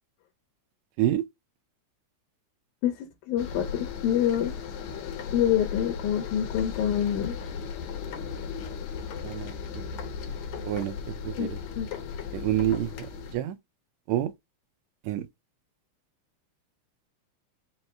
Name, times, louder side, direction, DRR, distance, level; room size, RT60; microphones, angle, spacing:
voice 1, 2.8-4.5 5.3-7.3 11.4-11.5 11.8-11.9, left 10 dB, 85° left, 2.2 m, -26 dB
sound 1, 3.4-13.4, left 6 dB, 70° left, 2.2 m, -36 dB
voice 2, 9.2-10.0 10.6-11.6 12.3-13.6 14.1-14.3 15.0-15.3, right 13 dB, 80° right, 1.7 m, -29 dB
5.3 x 2.0 x 4.3 m
omnidirectional pair, 3.5 m